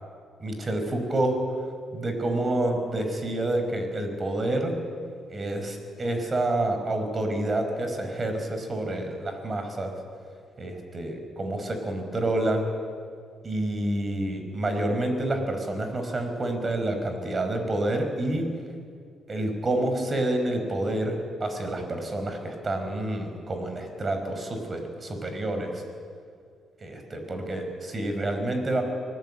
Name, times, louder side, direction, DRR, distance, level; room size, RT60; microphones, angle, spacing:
voice 1, 0.4-1.4 1.9-4.8 5.3-9.9 10.6-12.6 13.4-18.5 19.3-25.8 26.8-28.8, right 1 dB, 30° right, 6 dB, 5.2 m, -28 dB
24.5 x 18.5 x 8.9 m, 2.2 s
cardioid pair, 90°, 0 cm